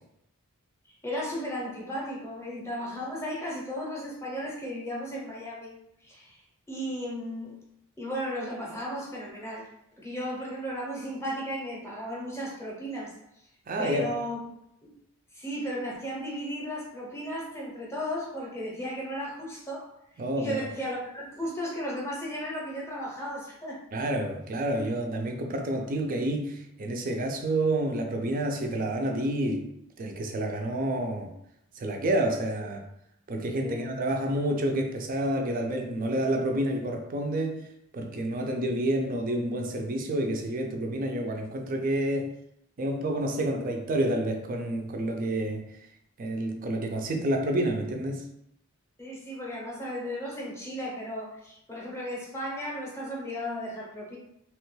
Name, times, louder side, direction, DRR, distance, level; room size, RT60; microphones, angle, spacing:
voice 1, 1.0-5.8 6.0-6.4 6.7-7.6 8.0-9.7 10.0-13.1 13.8-14.4 15.3-19.9 20.3-23.8 32.6-32.7 33.6-33.9 49.0-54.2, equal, 15° left, 0.7 m, -35 dB
voice 2, 13.7-14.1 20.2-20.6 23.9-29.7 30.0-31.3 31.8-32.9 33.3-37.7 37.9-42.3 42.8-45.6 46.2-48.2, right 1 dB, 40° right, 0.4 m, -29 dB
2.9 x 2.2 x 3.1 m
head